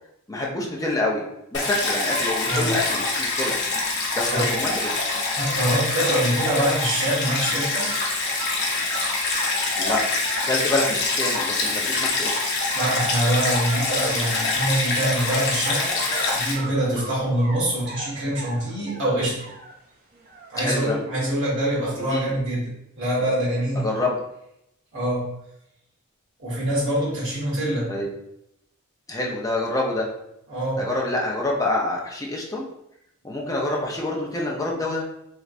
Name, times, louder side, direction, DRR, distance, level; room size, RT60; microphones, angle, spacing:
voice 1, 0.3-1.2 1.5-3.6 4.1-5.0 9.8-10.0 10.4-12.3 16.9-17.1 20.6-21.0 22.1-22.4 23.8-24.2 27.9-28.1 29.1-30.1 30.8-32.6 33.2-35.1, left 2 dB, 15° left, -2 dB, 0.6 m, -26 dB
Stream, 1.5-16.5, left 3 dB, 55° left, 0.8 m, -25 dB
sound 1, 2.1-2.2 2.5-6.3 6.7-7.1 7.4-7.5 7.9-8.6 8.9-10.9 11.5-11.6 11.9-12.0 12.3-12.4 12.8-13.0 13.2-14.8 15.2-17.6 17.9-19.7 20.1-20.8, right 2 dB, 45° right, 0.7 m, -38 dB
voice 2, 5.4-7.9 12.7-15.8 16.3-19.4 20.5-22.7 23.0-23.9 24.9-25.3 26.4-27.9 30.5-30.9, right 1 dB, 60° right, -7 dB, 1.5 m, -24 dB
3.3 x 3.0 x 2.5 m, 0.80 s
head